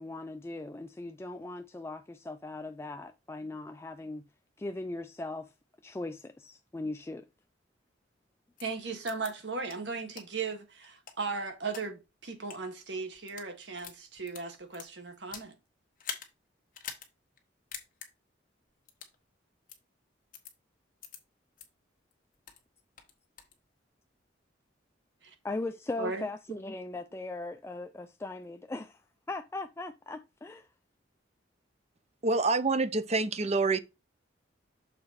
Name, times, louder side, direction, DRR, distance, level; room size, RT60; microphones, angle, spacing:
voice 1, 0.0-4.3 4.6-5.5 5.8-7.3 25.4-29.0 29.3-30.7, left 2 dB, 15° left, 0.3 m, -39 dB
sound 1, 8.6-8.7 9.1-9.3 9.7-9.8 10.2-10.3 10.8-11.8 12.4-12.6 13.1-13.5 13.8-15.5 16.0-16.3 16.7-17.1 17.4-17.5 17.7-18.1 18.9-19.2 19.7-19.8 20.3-20.5 21.0-21.2 21.6-21.7 22.1-22.6 23.0-23.5, left 7 dB, 45° left, 1.4 m, -44 dB
voice 2, 8.6-15.6 25.2-25.3 26.0-26.3, right 4 dB, 65° right, 1.6 m, -37 dB
voice 3, 32.2-33.8, right 3 dB, 35° right, 0.6 m, -27 dB
6.8 x 4.2 x 4.1 m
head